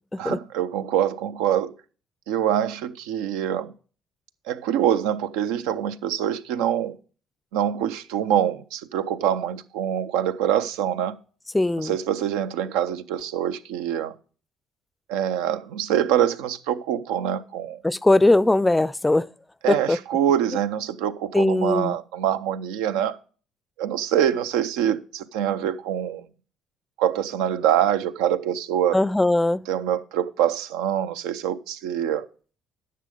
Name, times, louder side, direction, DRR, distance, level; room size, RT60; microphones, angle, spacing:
voice 1, 0.2-1.7 2.3-3.7 4.5-7.0 7.5-11.2 11.8-14.1 15.1-17.8 19.6-23.2 23.8-26.3 27.0-29.0 29.7-32.3, right 10 dB, 80° right, 0.5 m, -25 dB
voice 2, 11.5-11.9 17.8-19.3 19.7-20.0 21.3-22.0 28.9-29.6, left 2 dB, 15° left, 0.4 m, -20 dB
10.0 x 6.6 x 5.0 m
hypercardioid pair, 60°, 0 cm